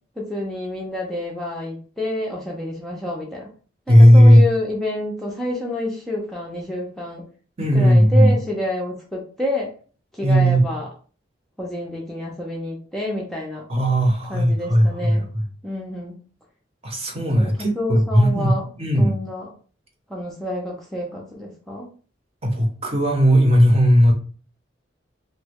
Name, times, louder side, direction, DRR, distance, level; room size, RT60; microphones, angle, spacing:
voice 1, 0.2-3.5 3.9-7.2 7.7-9.7 10.1-10.9 11.6-13.6 14.3-15.3 15.6-16.2 17.4-18.7 19.0-19.5 20.1-21.9, left 1 dB, ahead, -3 dB, 0.5 m, -28 dB
voice 2, 3.9-4.4 7.6-8.3 10.2-10.6 13.7-15.2 16.8-18.5 18.8-19.1 22.4-24.1, equal, 30° right, 1 dB, 0.8 m, -15 dB
3.0 x 2.2 x 3.4 m, 0.40 s
head